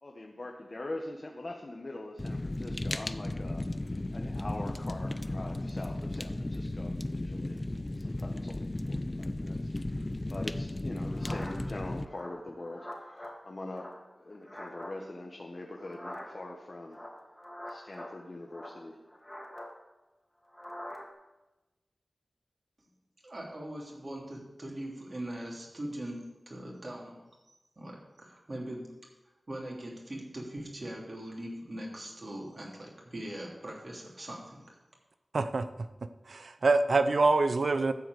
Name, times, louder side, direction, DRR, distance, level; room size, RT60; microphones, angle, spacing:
voice 1, 0.0-7.6 8.0-13.9 14.1-17.0 17.7-19.0, left 2 dB, 50° left, 1 dB, 1.3 m, -43 dB
Fire, 2.2-12.0, left 1 dB, 30° left, 0.6 m, -35 dB
sound 1, 11.0-11.7 12.1-13.4 13.7-14.9 15.8-16.5 16.9-18.1 18.5-19.7 20.5-21.1, left 1 dB, 15° left, 2.3 m, -45 dB
voice 2, 23.2-27.2 27.5-28.9 29.5-34.8, right 1 dB, 50° right, -2 dB, 3.4 m, -41 dB
voice 3, 35.3-35.7 36.3-37.9, right 3 dB, 75° right, 10 dB, 0.7 m, -25 dB
13.0 x 4.8 x 8.1 m, 1.0 s
cardioid pair, 45°, 0 cm